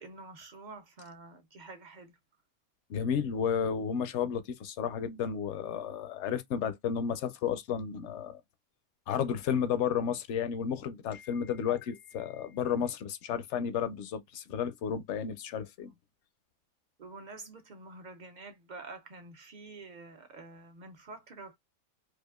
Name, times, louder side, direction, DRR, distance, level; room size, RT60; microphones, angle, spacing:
voice 1, 0.0-2.1 17.0-21.6, right 3 dB, 65° right, 0.4 m, -48 dB
voice 2, 2.9-8.4 9.1-15.9, left 7 dB, 65° left, 0.7 m, -32 dB
4.7 x 2.4 x 2.2 m
omnidirectional pair, 1.5 m